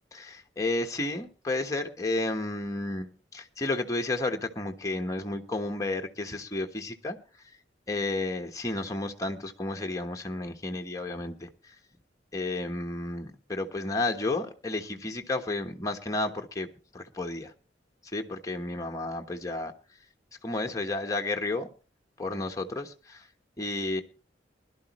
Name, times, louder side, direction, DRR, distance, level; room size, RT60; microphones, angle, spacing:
voice 1, 0.1-7.2 7.9-11.8 12.3-16.7 16.9-17.5 18.1-19.7 20.4-21.7 22.2-23.3 23.6-24.0, left 2 dB, 20° left, 3 dB, 1.2 m, -32 dB
21.0 x 12.0 x 3.1 m, 0.33 s
head